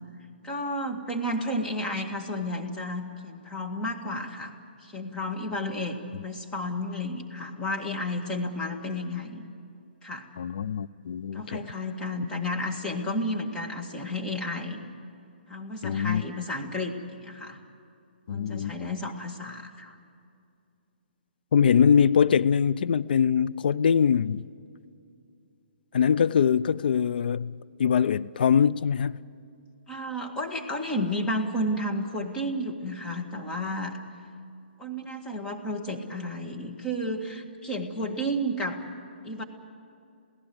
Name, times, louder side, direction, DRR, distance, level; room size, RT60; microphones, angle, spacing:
voice 1, 0.4-4.5 4.8-9.5 10.0-10.3 11.3-14.9 15.5-17.6 18.3-20.0 29.9-34.0 34.8-38.8 39.2-39.4, left 1 dB, 10° left, 1.9 m, -32 dB
voice 2, 10.4-11.6 15.8-16.2 18.3-19.0 21.5-24.4 25.9-27.5 27.8-29.2, left 7 dB, 60° left, 0.5 m, -23 dB
27.5 x 17.0 x 7.9 m
hypercardioid pair, 140°, 6 cm